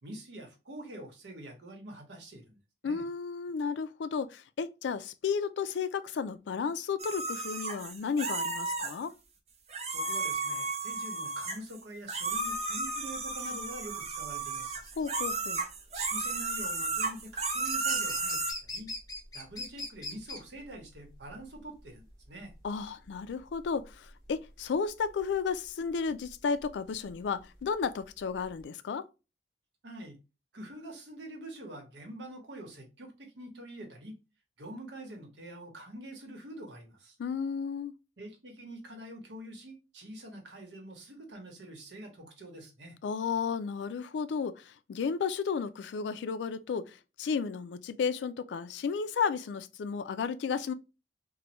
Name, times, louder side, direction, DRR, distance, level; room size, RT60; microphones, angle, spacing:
voice 1, 0.0-2.6 2.8-3.0 9.9-14.8 15.9-18.9 19.3-22.5 29.8-30.2 30.5-34.2 34.6-37.2 38.2-43.0, right 1 dB, 90° right, 1.0 m, -45 dB
voice 2, 2.8-9.1 15.0-15.6 22.6-29.1 37.2-37.9 43.0-50.7, left 5 dB, 85° left, 0.3 m, -33 dB
scream woman, 7.0-9.0 9.7-11.8 12.1-18.5, right 3 dB, 35° right, 0.6 m, -33 dB
sound 1, 12.3-28.6, left 2 dB, 20° left, 1.0 m, -45 dB
3.1 x 2.2 x 2.8 m
head